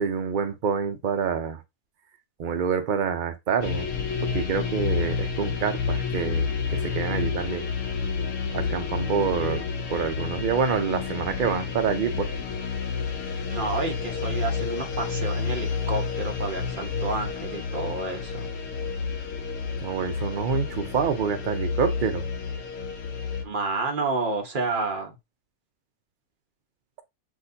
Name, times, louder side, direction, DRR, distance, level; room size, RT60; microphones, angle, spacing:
voice 1, 0.0-1.6 2.4-3.9 4.2-7.6 8.5-12.3 19.8-22.3, right 6 dB, 55° right, 0.5 m, -27 dB
sound 1, 3.6-23.4, left 5 dB, 65° left, 0.9 m, -30 dB
voice 2, 9.3-9.6 13.5-18.5 23.4-25.2, right 3 dB, 40° right, 1.0 m, -30 dB
6.2 x 2.7 x 2.7 m
omnidirectional pair, 1.6 m